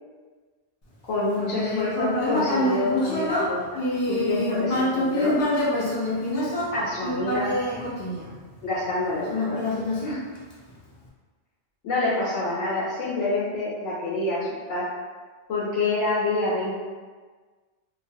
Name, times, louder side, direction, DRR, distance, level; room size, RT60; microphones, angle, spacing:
voice 1, 1.0-3.8 4.1-5.4 6.7-7.6 8.6-9.7 10.0-10.2 11.8-14.9 15.5-16.7, left 2 dB, 85° left, -8 dB, 1.0 m, -27 dB
Human voice, 1.3-8.7 9.3-10.7, left 1 dB, 45° left, 0.5 m, -26 dB
2.4 x 2.3 x 2.6 m, 1.4 s
omnidirectional pair, 1.2 m